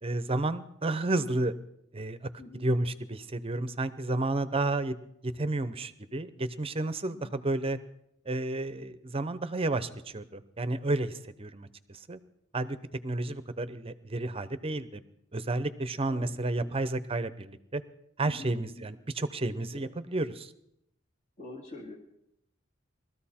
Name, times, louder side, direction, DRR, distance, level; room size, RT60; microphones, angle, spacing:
voice 1, 0.0-1.5 1.9-4.9 5.2-7.8 8.3-12.2 12.5-12.8 13.0-15.0 15.3-17.8 18.2-20.5, right 2 dB, 30° right, 13 dB, 0.7 m, -31 dB
voice 2, 2.4-2.7 7.1-7.4 16.1-16.7 18.2-18.8 19.7-19.9 21.4-22.0, left 2 dB, 40° left, -4 dB, 1.8 m, -46 dB
20.5 x 13.5 x 4.3 m, 0.77 s
head